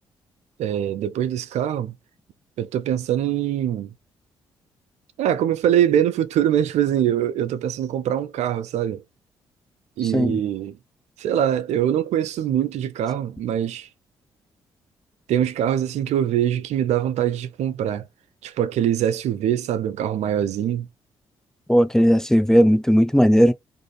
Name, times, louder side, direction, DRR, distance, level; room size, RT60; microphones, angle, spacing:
voice 1, 0.6-1.9 2.6-3.9 5.2-9.0 10.0-10.8 11.2-13.9 15.3-18.1 18.4-20.9, right 10 dB, 70° right, 0.4 m, -23 dB
voice 2, 21.7-23.5, equal, 5° left, 0.4 m, -16 dB
2.5 x 2.5 x 3.1 m
hypercardioid pair, 50°, 12 cm